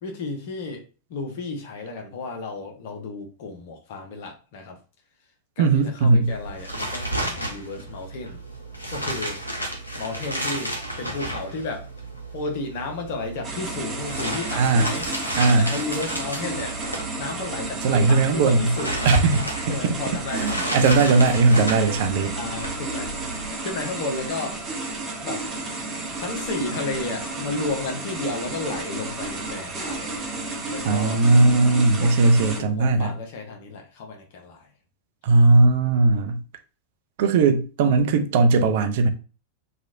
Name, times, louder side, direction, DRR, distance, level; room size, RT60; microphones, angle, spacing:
voice 1, 0.0-0.8 1.1-4.8 5.6-8.4 8.9-9.4 10.0-11.9 12.3-15.1 15.6-16.9 17.2-19.1 19.7-21.1 22.3-24.6 25.2-25.5 26.2-30.2 30.7-31.2 32.0-32.2 32.6-34.7, left 3 dB, 50° left, 0.9 m, -33 dB
voice 2, 5.6-6.3 14.5-14.9 15.3-15.7 17.8-18.7 19.0-20.0 20.3-22.4 30.8-33.1 35.2-36.4 37.2-39.1, right 3 dB, 50° right, 0.5 m, -18 dB
sound 1, 6.2-23.5, right 1 dB, 85° left, 0.7 m, -33 dB
sound 2, 13.4-32.6, right 2 dB, 20° right, 0.8 m, -32 dB
3.0 x 2.4 x 2.6 m
figure-of-eight pair, 90°, 0 cm